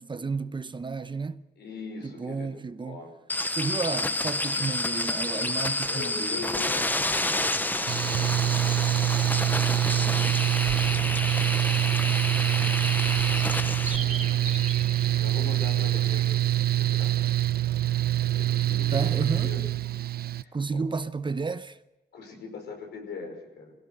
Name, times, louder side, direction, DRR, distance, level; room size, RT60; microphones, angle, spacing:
voice 1, 0.0-1.4 2.0-3.0 3.5-6.5 18.9-19.7 20.5-21.8, right 4 dB, 30° right, 0.8 m, -32 dB
voice 2, 1.6-3.1 5.9-8.9 9.4-11.2 13.9-17.2 18.2-19.1 19.4-19.7 20.3-20.9 22.1-23.7, left 4 dB, 85° left, 5.7 m, -42 dB
sound 1, 3.3-14.0, left 2 dB, 10° left, 0.8 m, -29 dB
Mechanical fan, 7.9-20.4, right 14 dB, 65° right, 0.6 m, -25 dB
sound 2, 10.6-16.3, right 4 dB, 50° right, 4.2 m, -40 dB
23.0 x 17.0 x 6.6 m
cardioid pair, 95°, 17 cm